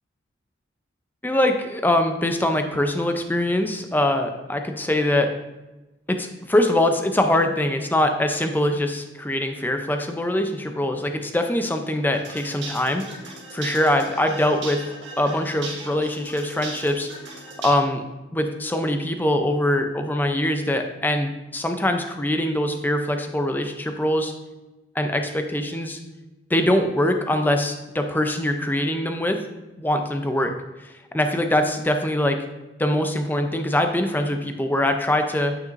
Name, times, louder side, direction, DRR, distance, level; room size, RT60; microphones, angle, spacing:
voice 1, 1.2-5.3 6.1-13.0 13.5-14.8 15.2-17.1 17.6-18.0 18.3-24.3 25.0-26.0 26.5-29.4 29.8-30.5 30.8-32.4 32.8-35.6, left 1 dB, 10° left, 6 dB, 0.5 m, -23 dB
sound 1, 12.1-17.7, right 3 dB, 70° right, 1.7 m, -38 dB
9.0 x 5.9 x 2.5 m, 1.1 s
head